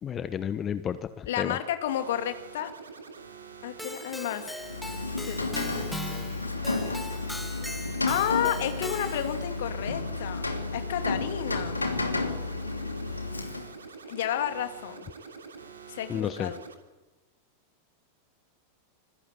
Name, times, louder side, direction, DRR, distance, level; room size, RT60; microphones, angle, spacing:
voice 1, 0.0-1.6 16.1-16.5, left 8 dB, 25° left, 13 dB, 1.1 m, -32 dB
voice 2, 1.2-2.7 3.6-4.5 5.3-5.5 8.1-11.8 14.1-15.1 15.9-16.6, left 10 dB, 55° left, 8 dB, 2.5 m, -31 dB
sound 1, 1.9-16.7, right 5 dB, 70° right, 3.2 m, -46 dB
Keyboard (musical), 3.8-9.5, left 1 dB, 5° left, 1.5 m, -40 dB
Rain, 4.6-13.9, left 3 dB, 80° left, 2.7 m, -32 dB
27.0 x 20.5 x 8.2 m, 1.1 s
figure-of-eight pair, 90°, 0 cm